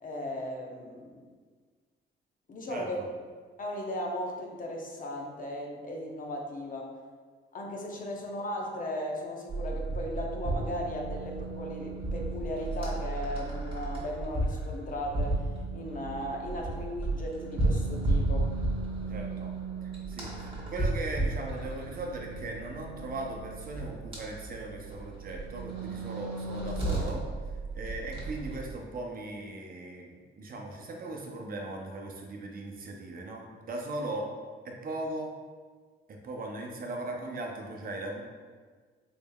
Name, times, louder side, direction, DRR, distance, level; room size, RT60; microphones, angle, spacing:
voice 1, 0.0-1.2 2.5-3.0 3.6-6.9 7.5-15.5 15.7-18.5, left 1 dB, 45° left, 0 dB, 0.7 m, -36 dB
voice 2, 2.7-3.1 19.1-19.5 19.8-27.3 27.7-34.3 34.6-35.3 36.1-38.2, right 2 dB, 45° right, 1 dB, 0.6 m, -38 dB
sound 1, 9.5-28.8, right 2 dB, 25° right, 1.3 m, -34 dB
4.0 x 3.5 x 2.2 m, 1.5 s
cardioid pair, 90°, 20 cm